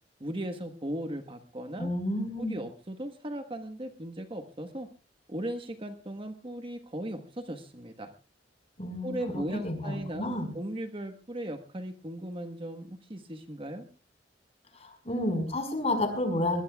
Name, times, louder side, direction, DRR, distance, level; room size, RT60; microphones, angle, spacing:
voice 1, 0.2-1.9 2.4-4.9 5.3-8.1 9.0-13.9, right 1 dB, 30° right, 6 dB, 1.4 m, -37 dB
voice 2, 1.8-2.6 8.8-10.5 14.7-16.6, left 1 dB, 35° left, 6 dB, 5.1 m, -31 dB
22.5 x 20.0 x 2.4 m, 0.35 s
head